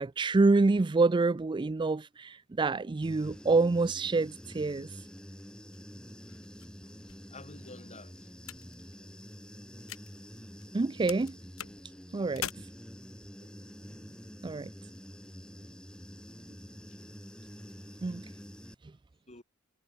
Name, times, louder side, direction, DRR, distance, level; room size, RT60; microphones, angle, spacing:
voice 1, 0.0-4.9 10.7-11.3 12.1-12.5 14.4-14.7 18.0-18.2, right 3 dB, 20° right, 0.4 m, -27 dB
Human voice / Buzz, 3.0-18.7, equal, 5° left, 4.0 m, -48 dB
sound 1, 5.7-10.8 11.1-12.5, left 10 dB, 70° left, 2.0 m, -45 dB
voice 2, 6.8-8.5 16.9-17.0 19.3-19.4, left 2 dB, 30° left, 7.7 m, -51 dB
head